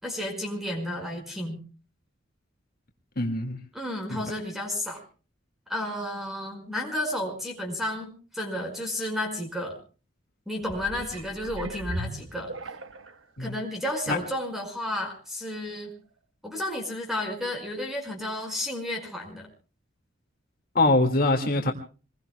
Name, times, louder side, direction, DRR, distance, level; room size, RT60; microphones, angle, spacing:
voice 1, 0.0-1.6 3.7-5.0 5.7-9.8 10.5-12.5 13.4-15.9 16.4-19.5, left 1 dB, ahead, 3 dB, 4.8 m, -32 dB
voice 2, 3.2-3.6 4.1-4.2 13.4-13.5 14.1-14.2 20.7-21.7, left 2 dB, 50° left, 2 dB, 1.9 m, -23 dB
sound 1, 10.6-13.2 13.9-14.0, right 1 dB, 85° right, 1.1 m, -37 dB
26.5 x 21.5 x 2.2 m, 0.36 s
head